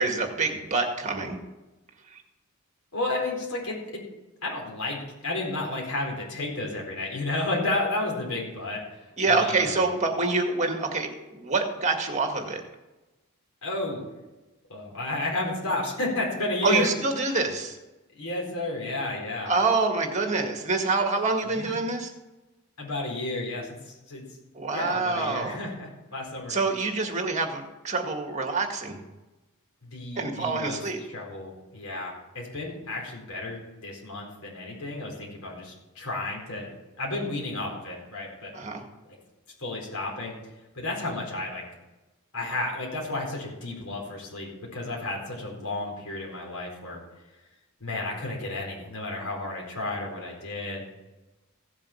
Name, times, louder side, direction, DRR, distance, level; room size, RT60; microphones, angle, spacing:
voice 1, 0.0-1.4 9.2-12.6 16.6-17.8 19.4-22.1 24.6-25.6 26.5-29.0 30.2-31.0 38.5-38.8, right 3 dB, 35° right, 4 dB, 1.9 m, -26 dB
voice 2, 2.9-4.0 4.4-9.8 13.6-14.0 14.7-16.9 18.1-19.5 21.5-21.8 22.8-24.2 24.7-26.6 29.8-30.8 31.1-36.7 37.0-38.5 39.1-39.2 39.6-40.4 40.7-41.6 42.3-47.0 47.8-50.9, left 2 dB, 75° left, -2 dB, 4.2 m, -32 dB
16.0 x 7.4 x 5.8 m, 1.1 s
head